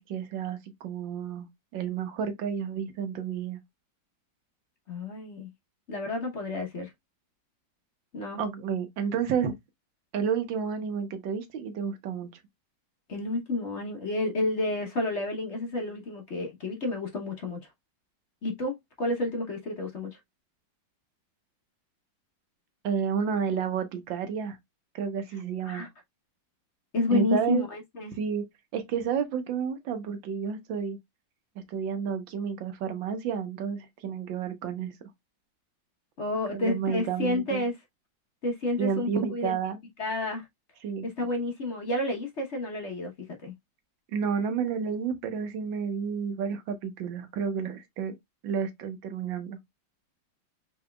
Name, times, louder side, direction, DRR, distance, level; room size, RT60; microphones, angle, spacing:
voice 1, 0.0-1.5 1.7-3.6 8.4-9.5 10.1-12.3 22.8-24.6 24.9-25.8 27.1-27.7 28.2-28.4 28.7-31.0 31.7-35.0 36.5-37.6 38.8-39.8 40.8-41.1 44.1-48.1 48.4-49.6, right 7 dB, 80° right, 1.7 m, -30 dB
voice 2, 4.9-5.5 5.9-6.9 8.1-8.5 13.1-17.6 18.4-20.2 25.6-25.9 26.9-28.2 36.2-37.7 38.4-39.6 40.0-40.5 41.0-43.1 43.4-43.5, left 2 dB, 45° left, 1.1 m, -30 dB
5.5 x 3.9 x 2.2 m
omnidirectional pair, 2.0 m